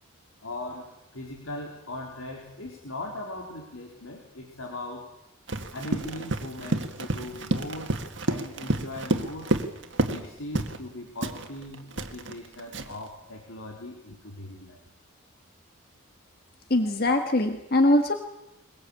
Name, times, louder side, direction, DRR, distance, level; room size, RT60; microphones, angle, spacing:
voice 1, 0.4-5.1 5.7-8.0 8.3-9.5 10.0-14.9, left 1 dB, 90° left, 0 dB, 3.8 m, -39 dB
Run, 5.5-10.3 10.5-10.8 11.2-13.1, right 1 dB, 60° right, 1.8 m, -30 dB
voice 2, 16.7-18.1, left 1 dB, 45° left, 5 dB, 1.6 m, -22 dB
22.5 x 22.0 x 8.6 m, 0.86 s
head